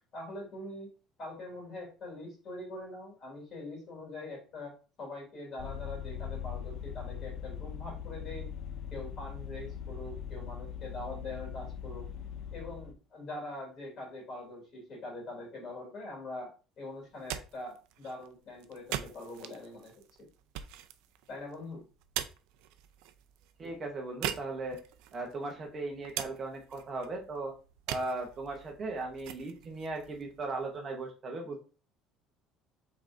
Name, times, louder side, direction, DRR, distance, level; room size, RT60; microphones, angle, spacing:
voice 1, 0.1-0.9 1.2-4.7 5.0-8.5 8.9-12.1 12.5-16.5 16.8-20.3 21.3-21.8, left 2 dB, 35° left, -1 dB, 2.7 m, -43 dB
Vehicle, 5.6-12.9, left 8 dB, 55° left, 0.5 m, -41 dB
sound 1, 17.0-31.0, right 12 dB, 75° right, 0.4 m, -43 dB
voice 2, 23.6-24.8 25.1-27.5 27.9-31.6, right 2 dB, 25° right, 2 dB, 0.8 m, -37 dB
5.3 x 3.8 x 2.5 m, 0.35 s
cardioid pair, 160°, 0 cm